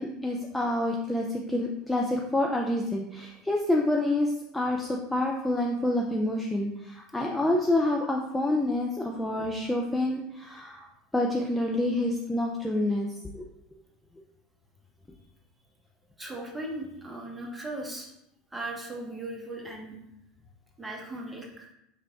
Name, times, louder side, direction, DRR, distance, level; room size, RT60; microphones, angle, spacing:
voice 1, 0.0-10.9 11.1-13.1 13.3-13.5, left 1 dB, 10° left, 0 dB, 0.4 m, -27 dB
voice 2, 16.2-18.1 18.5-20.0 20.8-21.7, right 1 dB, 10° right, 0 dB, 0.9 m, -37 dB
4.8 x 3.3 x 2.3 m, 0.82 s
figure-of-eight pair, 75°, 0 cm